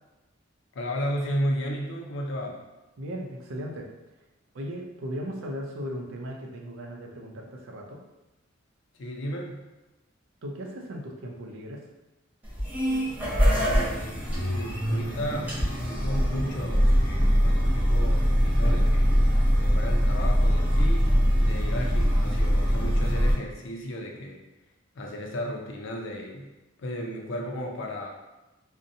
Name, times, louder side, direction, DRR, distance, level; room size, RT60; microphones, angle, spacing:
voice 1, 0.7-2.6 9.0-9.6 13.5-19.1 19.6-21.1 21.4-24.4 24.9-26.5 26.8-28.1, equal, 65° left, 1 dB, 0.5 m, -34 dB
voice 2, 3.0-3.9 4.5-8.0 10.4-11.9, equal, 85° right, 0 dB, 0.5 m, -37 dB
sound 1, 12.4-23.3, equal, 10° right, 0.6 m, -23 dB
2.6 x 2.1 x 2.6 m, 1.0 s
head